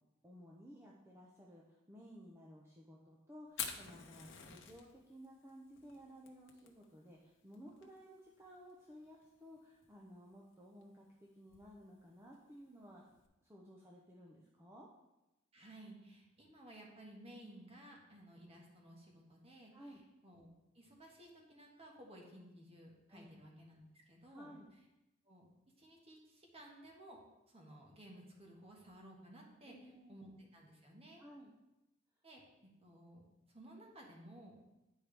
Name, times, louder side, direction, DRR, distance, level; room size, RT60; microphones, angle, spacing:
voice 1, 0.2-13.1 13.4-14.9 19.7-20.0 23.1-23.3 24.3-24.7 29.6-30.2 31.2-31.5, equal, 15° right, -3 dB, 0.7 m, -56 dB
Fire, 3.5-13.3, left 7 dB, 70° left, 0.9 m, -51 dB
voice 2, 15.5-20.5 20.7-23.8 24.1-24.5 25.2-25.5 25.8-27.2 27.5-29.7 30.1-31.2 32.2-32.4 32.8-34.5, right 1 dB, 30° right, -1 dB, 1.5 m, -56 dB
10.0 x 4.5 x 3.4 m, 0.96 s
head